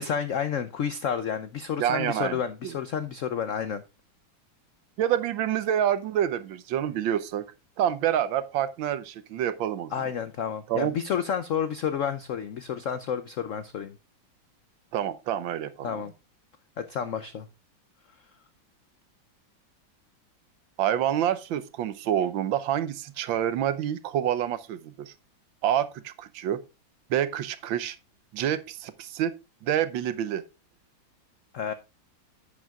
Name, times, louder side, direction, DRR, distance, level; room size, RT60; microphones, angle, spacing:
voice 1, 0.0-3.8 9.9-14.0 15.8-16.1 16.8-17.5 31.5-31.7, left 7 dB, 80° left, 0.7 m, -30 dB
voice 2, 1.8-2.7 5.0-7.5 7.8-9.9 10.7-10.9 14.9-16.0 20.8-25.1 25.6-26.6 27.1-28.0 28.3-29.3 29.6-30.4, right 10 dB, 80° right, 1.5 m, -27 dB
11.0 x 8.4 x 2.4 m
omnidirectional pair, 2.1 m